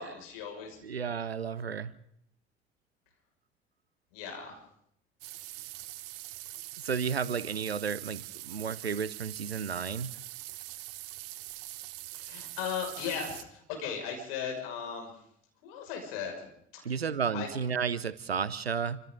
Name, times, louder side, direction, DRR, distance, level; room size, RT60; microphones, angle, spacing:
voice 1, 0.0-0.8 4.1-4.5 12.1-15.1 15.6-16.5 16.7-16.9 17.3-17.5, left 7 dB, 70° left, 2 dB, 6.1 m, -37 dB
voice 2, 0.8-1.9 6.8-10.1 16.8-19.0, right 6 dB, 90° right, 19 dB, 0.7 m, -32 dB
sound 1, 5.2-13.4, right 17 dB, 65° right, 1.0 m, -43 dB
29.0 x 26.0 x 3.9 m, 0.72 s
figure-of-eight pair, 50°, 30 cm